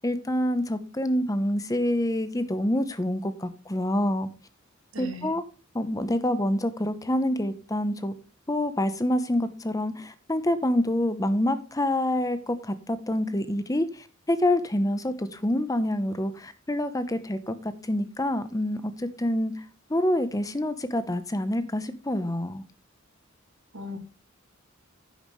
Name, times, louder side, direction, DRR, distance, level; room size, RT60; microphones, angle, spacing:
voice 1, 0.0-4.3 5.0-5.4 5.7-8.1 8.5-19.5 19.9-22.6, left 1 dB, 15° left, 12 dB, 0.9 m, -27 dB
voice 2, 4.9-5.3 23.7-24.0, equal, 75° right, 5 dB, 2.6 m, -37 dB
11.0 x 9.1 x 3.2 m, 0.33 s
head